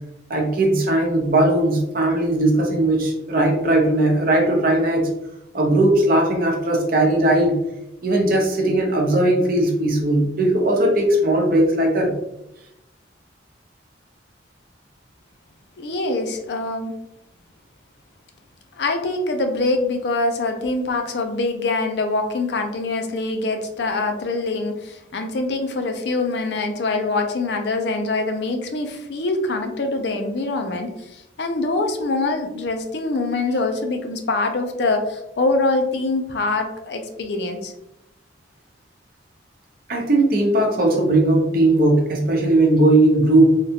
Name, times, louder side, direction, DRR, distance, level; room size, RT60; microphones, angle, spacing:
voice 1, 0.3-5.1 5.5-7.6 8.0-12.1 39.9-43.5, right 1 dB, 50° right, 0 dB, 0.7 m, -18 dB
voice 2, 15.8-16.9 18.8-37.7, left 2 dB, 65° left, 5 dB, 0.5 m, -24 dB
3.5 x 2.3 x 2.8 m, 0.85 s
head